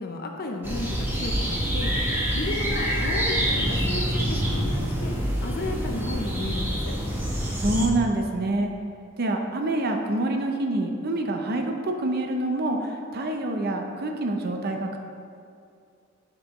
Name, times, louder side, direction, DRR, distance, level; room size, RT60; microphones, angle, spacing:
voice 1, 0.0-1.9 2.3-5.1 5.4-7.0, left 2 dB, 45° left, 3 dB, 0.6 m, -33 dB
sound 1, 0.6-7.9, equal, 10° right, 1.0 m, -26 dB
voice 2, 7.6-8.7 9.2-15.0, right 2 dB, 45° right, 3 dB, 0.6 m, -26 dB
8.1 x 5.3 x 3.0 m, 2.4 s
head